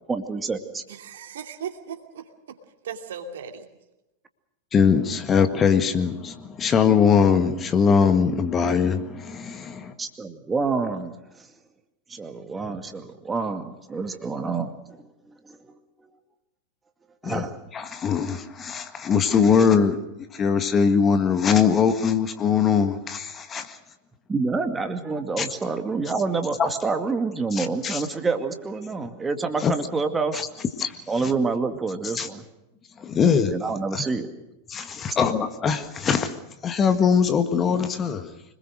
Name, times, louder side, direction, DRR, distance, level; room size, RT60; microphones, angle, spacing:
voice 1, 0.1-0.8 10.0-11.1 12.1-15.7 17.2-17.6 24.3-30.4 31.1-32.4 33.5-34.3, right 4 dB, 15° right, 7 dB, 2.2 m, -27 dB
voice 2, 0.9-2.6 2.8-3.7, right 7 dB, 60° right, 5 dB, 2.7 m, -37 dB
voice 3, 4.7-9.9 17.2-17.4 17.7-20.0 20.3-23.8 25.4-25.5 26.6-26.7 27.5-28.0 29.6-29.7 30.8-30.9 32.2-32.3 33.0-33.5 33.9-34.0 34.7-36.3 36.6-38.3, left 6 dB, 25° left, 8 dB, 1.7 m, -21 dB
26.0 x 21.0 x 6.5 m, 0.94 s
figure-of-eight pair, 90°, 0 cm